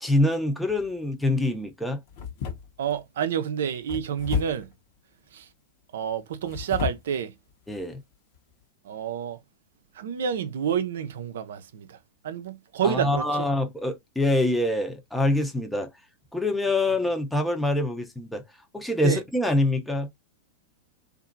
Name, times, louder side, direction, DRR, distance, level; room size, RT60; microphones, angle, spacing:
voice 1, 0.0-2.0 7.7-8.0 12.8-15.9 16.3-18.4 18.7-20.1, left 1 dB, 5° left, 0.6 m, -25 dB
sound 1, 0.7-1.1 2.1-3.0 3.9-4.7 6.3-7.1 7.7-7.8 8.3-8.5, left 7 dB, 55° left, 1.0 m, -32 dB
voice 2, 2.8-4.7 5.3-5.5 5.9-7.3 8.9-9.4 10.0-12.0 12.2-13.5 19.0-19.2, right 8 dB, 70° right, 0.5 m, -29 dB
2.7 x 2.5 x 2.5 m
hypercardioid pair, 105°, 0 cm